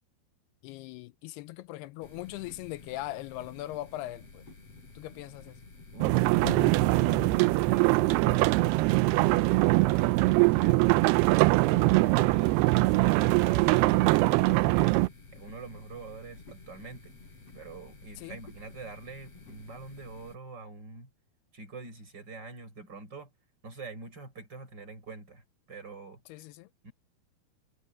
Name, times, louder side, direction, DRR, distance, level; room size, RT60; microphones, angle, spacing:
voice 1, 0.6-4.4 5.0-5.6 18.2-18.4 26.3-26.7, left 16 dB, 90° left, 2.7 m, -40 dB
sound 1, 2.0-20.4, left 3 dB, 40° left, 6.0 m, -48 dB
voice 2, 5.9-8.7 9.0-11.1 11.6-11.9 12.2-15.0 15.3-17.1 17.5-21.1 21.5-23.3 23.6-26.4 26.8-26.9, right 3 dB, 25° right, 6.8 m, -45 dB
sound 2, 6.0-15.1, right 22 dB, 85° right, 2.6 m, -23 dB
omnidirectional pair, 4.6 m